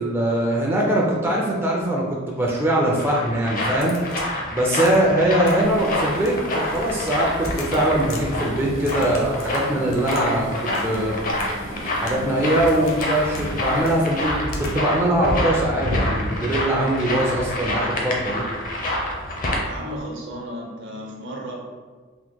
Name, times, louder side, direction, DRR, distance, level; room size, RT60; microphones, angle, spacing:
voice 1, 0.0-4.0 4.5-10.5 10.8-11.3 11.6-18.4, right 1 dB, 10° right, -3 dB, 0.3 m, -22 dB
sound 1, 2.6-19.6, left 1 dB, 45° left, 0.5 m, -27 dB
Crack, 3.8-4.3 4.8-5.1 5.4-5.8 6.1-7.2 7.4-8.2 8.8-10.3 10.5-11.1 11.4-11.5 12.0-12.3 12.7-13.1 13.3-13.5 13.8-14.0 14.5-14.7, left 3 dB, 85° left, 0.6 m, -40 dB
sound 2, 5.6-15.8 16.4-16.7 17.2-17.4 18.2-18.6 18.9-19.0 20.0-20.1, left 1 dB, 70° left, 0.9 m, -39 dB
voice 2, 19.7-21.5, equal, 65° right, -1 dB, 0.6 m, -33 dB
2.9 x 2.1 x 3.4 m, 1.4 s
head